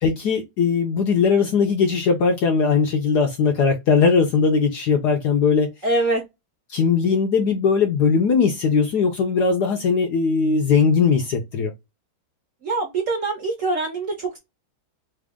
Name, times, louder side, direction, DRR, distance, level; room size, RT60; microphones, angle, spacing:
voice 1, 0.0-5.7 6.7-11.7, left 5 dB, 70° left, 1.0 m, -19 dB
voice 2, 5.8-6.2 12.6-14.4, right 2 dB, 55° right, 0.9 m, -24 dB
3.4 x 2.4 x 3.4 m
omnidirectional pair, 2.2 m